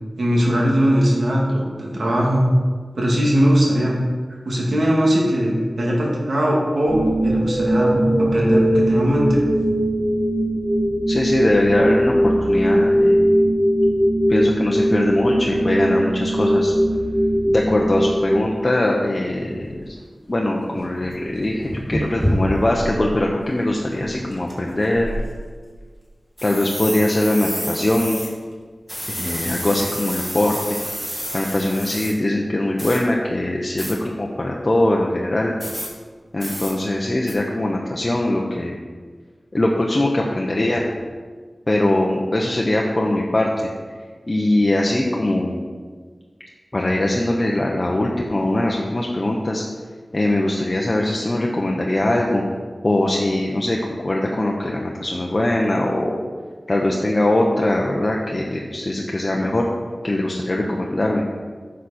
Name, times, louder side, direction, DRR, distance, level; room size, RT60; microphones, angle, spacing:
voice 1, 0.2-2.5 2.9-4.0 4.3-9.4, equal, 75° right, -3 dB, 2.2 m, -20 dB
sound 1, 6.9-18.9, equal, 15° left, 3.0 m, -20 dB
voice 2, 11.1-13.4 14.3-16.7 17.5-19.9 20.3-21.6 21.9-25.1 26.4-28.2 29.1-30.6 31.3-35.5 36.3-38.8 39.5-40.8 41.7-43.5 44.3-45.6 46.7-49.6 50.1-52.4 52.8-56.2 56.7-59.7 60.0-61.2, left 1 dB, 35° left, -1 dB, 0.9 m, -21 dB
sound 2, 18.8-18.9 19.6-19.8 20.3-20.4 20.7-23.1 23.5-23.6 23.9-24.5 24.9-25.7 26.4-28.3 28.9-32.1 32.8-33.0 33.8-33.9 35.6-35.9 36.4-36.7 37.3-37.4, equal, ahead, 2.0 m, -28 dB
10.0 x 6.4 x 4.3 m, 1.5 s
wide cardioid pair, 80°, 0 cm